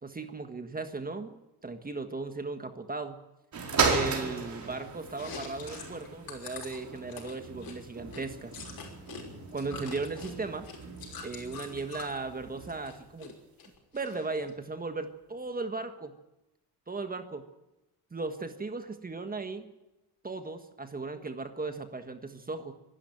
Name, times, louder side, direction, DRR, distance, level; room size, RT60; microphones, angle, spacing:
voice 1, 0.0-1.4 1.6-3.2 3.8-8.5 9.5-10.7 11.2-13.3 13.9-16.1 16.9-17.4 18.1-19.7 20.2-22.7, right 3 dB, 20° right, 8 dB, 1.5 m, -37 dB
sound 1, 3.5-13.1 13.7-13.8, right 4 dB, 45° right, 4.6 m, -36 dB
Chewing mastication, 5.1-9.2 9.5-12.2 12.6-13.3 13.6-14.5, left 5 dB, 60° left, 5.8 m, -45 dB
24.0 x 12.5 x 9.1 m, 0.97 s
cardioid pair, 110°, 40 cm